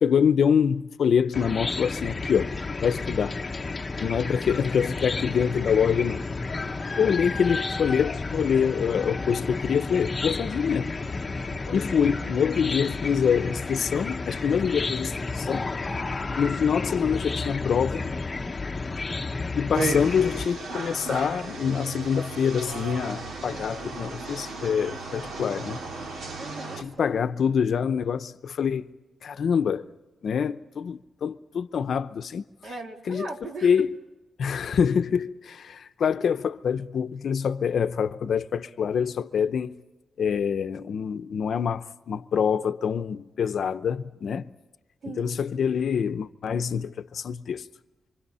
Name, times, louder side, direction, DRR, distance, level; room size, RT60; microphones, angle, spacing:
voice 1, 0.0-3.4 4.0-6.2 7.0-11.0 11.7-15.7 16.4-18.1 19.6-25.8 26.8-28.9 29.2-29.9 30.2-32.4 33.1-33.3 33.6-34.0 34.4-39.7 40.2-44.5 45.1-47.7, left 7 dB, 60° left, 0.7 m, -25 dB
Chicken rooster / Cricket, 1.3-20.4, left 3 dB, 25° left, 0.8 m, -31 dB
sound 1, 19.7-26.8, right 3 dB, 90° right, 2.6 m, -35 dB
voice 2, 26.4-27.1 32.6-33.9 45.0-45.4, right 3 dB, 55° right, 2.9 m, -39 dB
26.5 x 25.5 x 5.5 m
wide cardioid pair, 175°, 0 cm